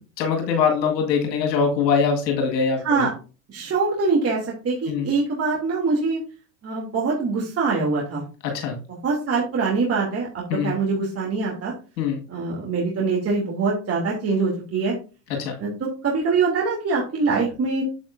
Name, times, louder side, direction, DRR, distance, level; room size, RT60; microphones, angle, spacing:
voice 1, 0.2-3.1 4.9-5.1 8.5-8.8 10.5-10.7 12.0-12.2 15.4-15.6, left 6 dB, 85° left, 2 dB, 2.1 m, -22 dB
voice 2, 3.5-6.2 6.6-8.2 9.0-11.7 12.3-15.0 15.3-17.8, right 4 dB, 30° right, -3 dB, 2.9 m, -24 dB
8.0 x 7.6 x 2.6 m, 0.34 s
hypercardioid pair, 95°, 48 cm